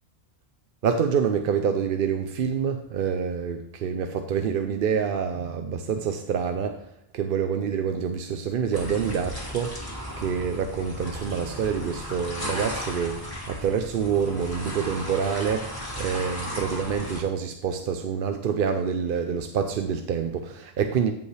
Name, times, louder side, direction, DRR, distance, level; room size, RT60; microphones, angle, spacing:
voice 1, 0.8-6.8 7.1-9.7 10.2-13.2 13.5-21.1, right 7 dB, 65° right, 6 dB, 0.7 m, -27 dB
sound 1, 8.7-17.2, equal, 20° left, 2.4 m, -35 dB
14.5 x 5.4 x 3.3 m, 0.74 s
omnidirectional pair, 1.0 m